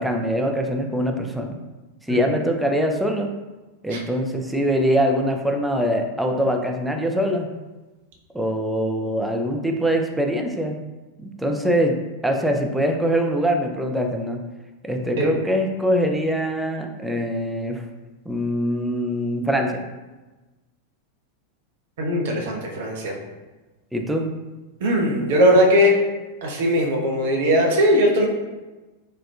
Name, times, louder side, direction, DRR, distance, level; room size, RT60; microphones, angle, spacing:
voice 1, 0.0-1.5 2.1-3.3 3.8-7.5 8.3-10.8 11.2-12.0 12.2-14.4 14.8-17.8 18.3-19.8 23.9-24.3, equal, 5° right, 3 dB, 0.3 m, -23 dB
voice 2, 22.0-23.1 24.8-25.9 26.4-28.3, equal, 55° right, -1 dB, 0.6 m, -19 dB
4.1 x 2.2 x 2.3 m, 1.2 s
figure-of-eight pair, 90°, 0 cm